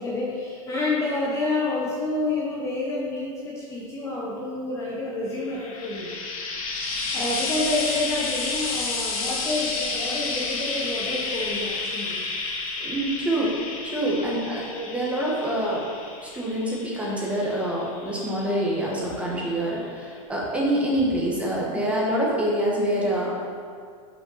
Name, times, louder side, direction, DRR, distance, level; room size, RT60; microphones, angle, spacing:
voice 1, 0.0-6.1 7.1-12.2, left 2 dB, 15° left, -5 dB, 0.8 m, -28 dB
Frying (food), 5.4-18.8 19.8-19.9, left 3 dB, 90° left, 1.3 m, -31 dB
voice 2, 12.8-13.5 13.8-15.8 16.2-23.3, right 1 dB, 5° right, -4 dB, 1.2 m, -26 dB
5.8 x 5.2 x 5.4 m, 2.1 s
supercardioid pair, 160°, 18 cm